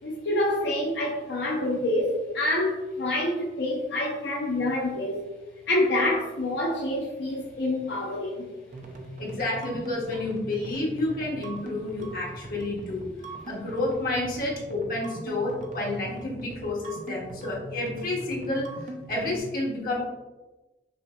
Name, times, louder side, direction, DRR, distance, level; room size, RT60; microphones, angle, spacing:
voice 1, 0.0-5.2 5.7-8.5, left 1 dB, 80° left, -3 dB, 0.6 m, -27 dB
sound 1, 8.7-19.4, right 1 dB, 45° right, 0.4 m, -41 dB
voice 2, 9.2-13.1 13.5-18.7 19.1-20.0, left 2 dB, 55° left, -4 dB, 1.1 m, -30 dB
5.3 x 2.7 x 2.2 m, 1.1 s
head